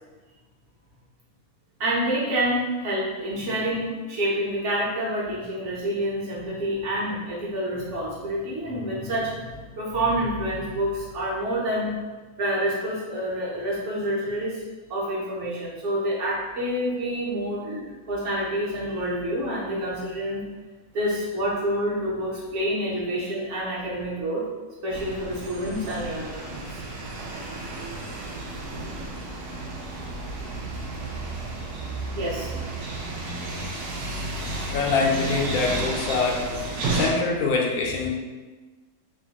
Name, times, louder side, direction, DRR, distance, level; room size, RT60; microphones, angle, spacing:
voice 1, 1.8-11.9 12.4-14.6 14.9-20.4 20.9-24.4 24.8-26.6 30.6-30.7 32.1-32.5, equal, 55° right, -6 dB, 1.1 m, -28 dB
sound 1, 24.9-37.1, right 2 dB, 85° right, 1.1 m, -32 dB
voice 2, 34.7-36.4 36.9-38.1, left 4 dB, 80° left, -1 dB, 1.0 m, -24 dB
3.0 x 2.5 x 2.8 m, 1.3 s
omnidirectional pair, 1.6 m